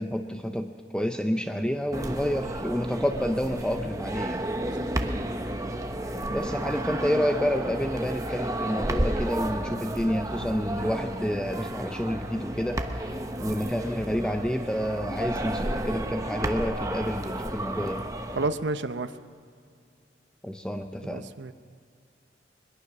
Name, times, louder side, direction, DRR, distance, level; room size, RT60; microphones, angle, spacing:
voice 1, 0.0-4.5 6.3-18.1 20.4-21.3, equal, 5° left, 6 dB, 0.6 m, -29 dB
sound 1, 1.9-18.5, right 1 dB, 20° right, 1.0 m, -32 dB
voice 2, 18.4-19.1 21.1-21.5, right 3 dB, 85° right, 10 dB, 0.7 m, -30 dB
21.5 x 21.5 x 6.1 m, 2.3 s
head